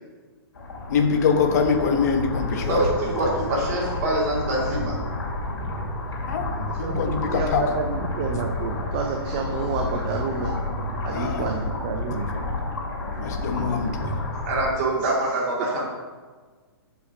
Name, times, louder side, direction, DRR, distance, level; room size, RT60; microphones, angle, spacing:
sound 1, 0.5-14.7, left 2 dB, 75° left, 2.5 m, -30 dB
voice 1, 0.9-2.8 6.3-7.8 11.1-11.5 13.2-14.1, left 5 dB, 40° left, 5 dB, 1.0 m, -24 dB
voice 2, 2.6-5.0 14.5-15.8, right 2 dB, 35° right, -4 dB, 2.4 m, -24 dB
voice 3, 6.7-10.5 11.0-12.3, right 4 dB, 20° right, 2 dB, 0.5 m, -29 dB
6.4 x 5.6 x 5.9 m, 1.4 s
hypercardioid pair, 175°, 14 cm